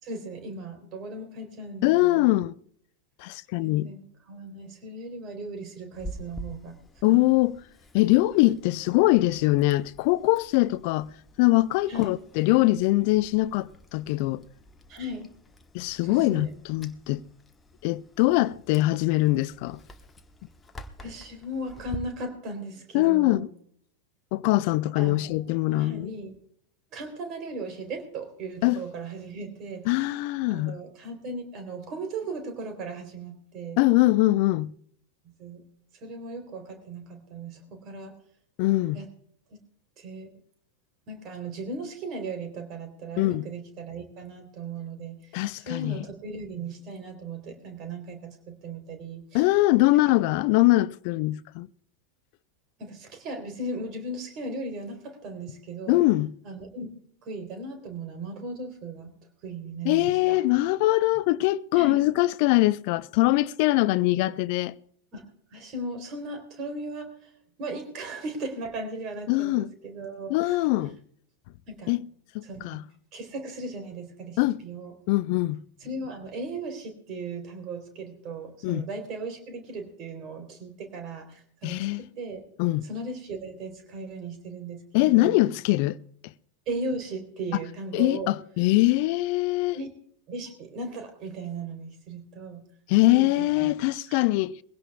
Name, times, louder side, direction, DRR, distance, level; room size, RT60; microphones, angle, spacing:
voice 1, 0.0-2.4 3.6-6.7 7.0-7.3 11.9-12.2 14.9-15.3 16.0-16.5 21.0-23.4 24.9-25.4 25.7-26.3 26.9-29.9 30.5-33.8 35.2-35.6 35.9-38.1 38.9-39.1 40.0-40.3 41.1-49.4 49.9-50.0 52.8-56.0 56.4-56.9 57.2-59.1 59.4-60.4 61.7-62.0 65.1-65.2 65.5-67.3 67.6-70.6 71.7-71.9 72.4-72.8 73.1-74.9 75.8-82.4 82.8-85.4 86.7-88.3 89.7-89.9 90.3-92.6 93.1-93.7 94.1-94.2, right 2 dB, 35° right, 3.4 m, -37 dB
voice 2, 1.8-2.5 3.2-3.9 7.0-7.5 7.9-11.1 11.4-14.4 15.7-17.2 17.8-19.8 22.9-23.5 24.3-26.1 28.6-28.8 29.9-30.8 33.8-34.7 38.6-39.0 43.2-43.5 45.3-46.0 49.3-51.7 55.9-56.3 59.8-64.7 69.3-69.7 70.3-71.0 71.9-72.0 72.3-72.8 74.4-74.6 75.1-75.6 78.6-78.9 81.6-82.0 82.6-82.9 84.9-86.0 87.9-89.8 92.9-94.6, left 18 dB, 45° left, 0.4 m, -22 dB
Chewing mastication, 5.9-22.0, equal, 15° left, 1.1 m, -47 dB
22.0 x 16.5 x 2.3 m
figure-of-eight pair, 90°, 0 cm